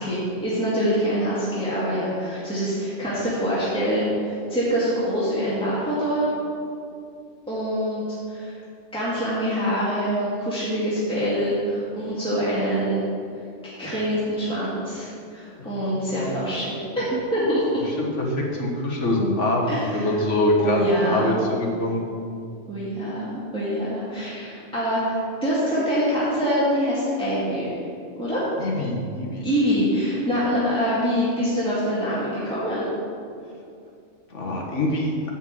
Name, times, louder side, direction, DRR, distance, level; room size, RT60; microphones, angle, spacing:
voice 1, 0.0-6.3 7.5-8.0 8.3-8.5 8.9-13.0 13.6-17.8 19.7-20.1 20.6-21.3 22.7-25.2 25.4-27.8 28.2-28.4 29.4-32.9, equal, 5° left, -10 dB, 1.9 m, -25 dB
voice 2, 15.6-16.3 18.0-22.0 28.6-29.4 34.3-35.1, left 1 dB, 80° left, -1 dB, 1.7 m, -24 dB
10.0 x 4.5 x 7.6 m, 2.5 s
omnidirectional pair, 1.2 m